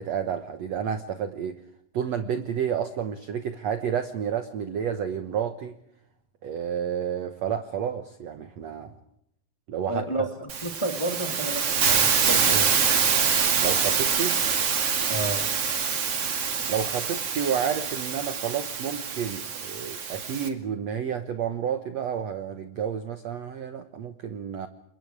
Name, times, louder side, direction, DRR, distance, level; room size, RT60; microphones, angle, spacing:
voice 1, 0.0-1.6 1.9-5.7 6.4-9.0 9.7-10.3 13.6-14.4 16.7-24.7, right 8 dB, 60° right, 9 dB, 1.9 m, -30 dB
voice 2, 9.9-10.2 10.6-12.8 15.1-15.5, right 1 dB, 10° left, 5 dB, 2.4 m, -31 dB
Hiss, 10.5-20.5, right 6 dB, 45° right, 2.9 m, -25 dB
30.0 x 26.5 x 4.8 m, 0.76 s
omnidirectional pair, 4.4 m